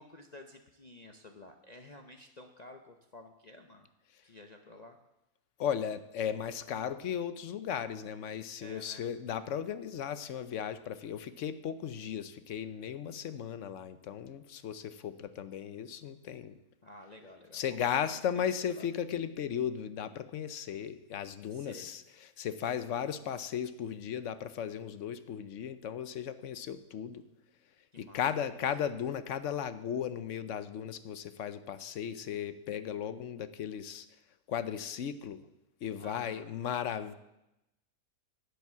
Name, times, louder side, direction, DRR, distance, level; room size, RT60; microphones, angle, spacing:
voice 1, 0.0-3.9 4.2-5.0 8.6-9.1 16.8-18.9 21.5-21.9 27.9-28.2 28.6-28.7 36.0-36.5, left 2 dB, 40° left, 4 dB, 0.6 m, -52 dB
voice 2, 5.6-16.5 17.5-27.2 28.0-34.1 34.5-35.4 35.8-37.1, left 8 dB, 65° left, 13 dB, 0.9 m, -36 dB
10.5 x 8.3 x 7.2 m, 0.91 s
omnidirectional pair, 1.6 m